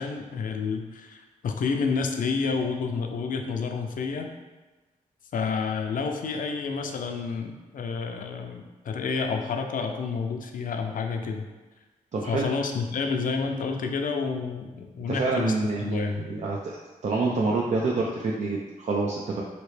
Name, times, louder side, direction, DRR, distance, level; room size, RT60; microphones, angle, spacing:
voice 1, 0.0-4.3 5.3-11.4 12.3-15.5 15.8-16.2, left 5 dB, 65° left, 4 dB, 0.4 m, -29 dB
voice 2, 12.1-12.5 15.1-16.8 17.0-19.4, right 3 dB, 50° right, -3 dB, 0.4 m, -27 dB
3.0 x 2.8 x 3.1 m, 1.2 s
cardioid pair, 65°, 15 cm